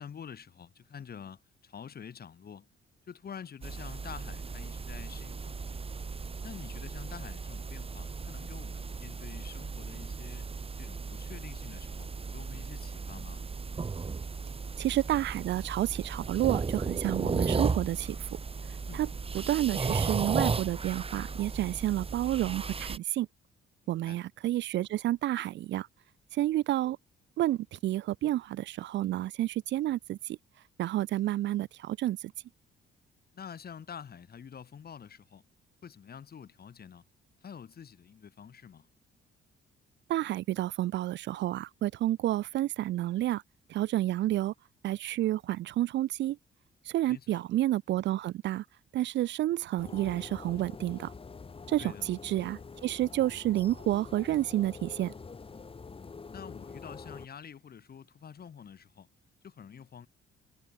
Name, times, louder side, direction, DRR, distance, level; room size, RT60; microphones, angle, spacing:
voice 1, 0.0-2.7 3.1-5.8 6.4-10.5 10.8-13.4 18.8-19.1 23.8-24.2 33.3-35.4 35.8-37.0 37.4-38.9 47.1-47.4 51.8-52.1 56.3-59.1 59.4-60.1, left 7 dB, 50° left, 6.8 m, -47 dB
sound 1, 3.6-23.0, right 4 dB, 30° right, 1.9 m, -35 dB
voice 2, 14.8-18.2 18.9-19.1 19.3-23.3 23.9-25.9 26.4-27.0 27.4-30.4 30.8-32.2 40.1-43.4 43.7-44.5 44.8-46.4 46.9-48.6 48.9-51.1 51.7-55.1, right 14 dB, 65° right, 0.4 m, -30 dB
sound 2, 49.8-57.3, left 4 dB, 30° left, 1.6 m, -46 dB
cardioid pair, 90°, 20 cm